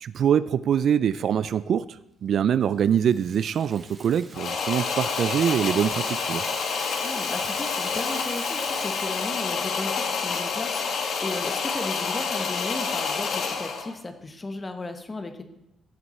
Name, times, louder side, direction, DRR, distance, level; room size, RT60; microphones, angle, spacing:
voice 1, 0.0-6.4, right 8 dB, 50° right, 16 dB, 0.3 m, -24 dB
Rattle (instrument), 2.6-9.6, right 3 dB, 25° right, 1.8 m, -43 dB
sound 1, 4.3-13.9, left 5 dB, 60° left, 1.7 m, -28 dB
voice 2, 7.0-15.4, left 2 dB, 20° left, 7 dB, 1.1 m, -35 dB
15.5 x 8.0 x 4.2 m, 0.88 s
cardioid pair, 155°, 0 cm